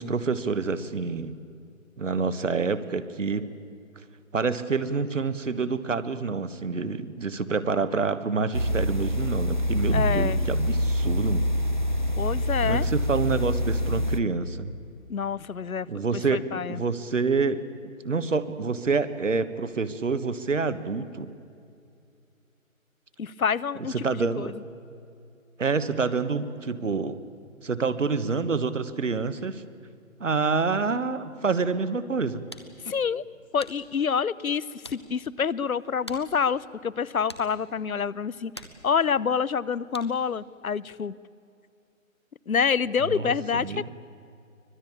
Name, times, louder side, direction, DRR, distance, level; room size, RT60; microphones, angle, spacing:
voice 1, 0.0-1.3 2.0-3.5 4.3-11.5 12.6-14.7 15.9-17.6 18.0-21.3 24.0-24.5 25.6-27.2 27.6-29.6 30.2-32.4 43.1-43.8, right 4 dB, 60° right, 13 dB, 1.5 m, -27 dB
sound 1, 8.5-14.2, left 1 dB, 35° right, 0.5 m, -25 dB
voice 2, 9.9-10.4 12.2-12.9 15.1-15.9 16.1-16.8 23.2-24.5 32.8-33.2 33.5-38.5 38.8-41.1 42.5-43.9, left 6 dB, 85° left, 20 dB, 0.9 m, -27 dB
sound 2, 32.1-40.4, equal, 20° left, 0.7 m, -49 dB
24.5 x 19.5 x 8.6 m, 2.5 s
figure-of-eight pair, 170°, 41 cm